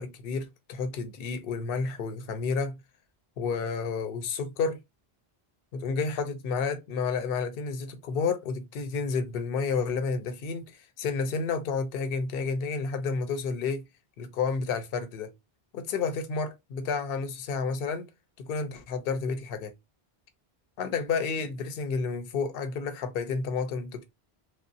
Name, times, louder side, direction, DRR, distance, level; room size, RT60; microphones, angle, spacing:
voice 1, 0.0-2.8 3.4-4.8 5.7-13.8 14.2-15.3 15.7-18.1 18.4-19.7 20.8-24.0, left 5 dB, 70° left, 0.8 m, -30 dB
3.0 x 2.0 x 2.5 m
omnidirectional pair, 1.1 m